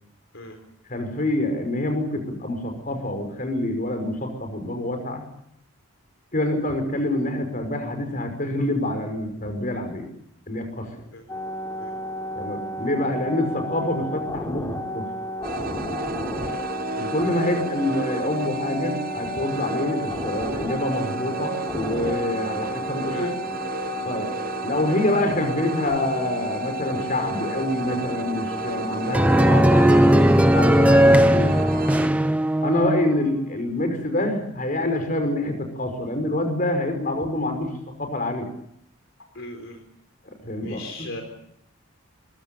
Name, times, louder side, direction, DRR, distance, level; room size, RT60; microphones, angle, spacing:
voice 1, 0.9-5.2 6.3-10.1 10.5-10.9 12.4-14.7 14.9-15.1 17.0-23.3 24.0-24.3 24.6-31.5 32.6-37.7 38.0-38.5 40.4-41.1, left 1 dB, 40° left, 6 dB, 5.8 m, -26 dB
sound 1, 11.3-29.8, equal, 15° left, 3.7 m, -32 dB
sound 2, 15.4-32.1, right 3 dB, 45° right, 1.0 m, -33 dB
voice 2, 16.4-16.7 23.1-23.3 39.3-39.8 40.6-41.2, left 2 dB, 65° left, 5 dB, 4.1 m, -38 dB
sound 3, 29.1-33.3, equal, 5° right, 0.9 m, -17 dB
23.5 x 23.5 x 7.1 m, 0.72 s
head